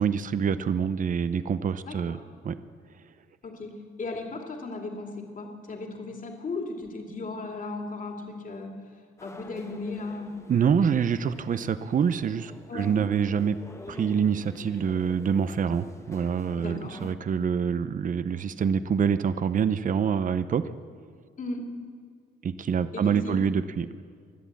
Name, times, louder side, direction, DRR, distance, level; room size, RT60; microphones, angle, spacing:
voice 1, 0.0-2.2 2.4-2.6 10.5-13.6 13.9-20.6 22.4-23.9, right 7 dB, 40° right, 13 dB, 0.7 m, -26 dB
voice 2, 1.9-2.2 3.4-8.7 9.2-10.4 12.7-12.9 16.6-16.9 21.4-21.7 22.9-23.5, left 3 dB, 40° left, 2 dB, 2.7 m, -36 dB
sound 1, 9.2-17.2, left 2 dB, 15° left, 1.1 m, -48 dB
24.0 x 8.1 x 7.3 m, 2.1 s
cardioid pair, 90°, 20 cm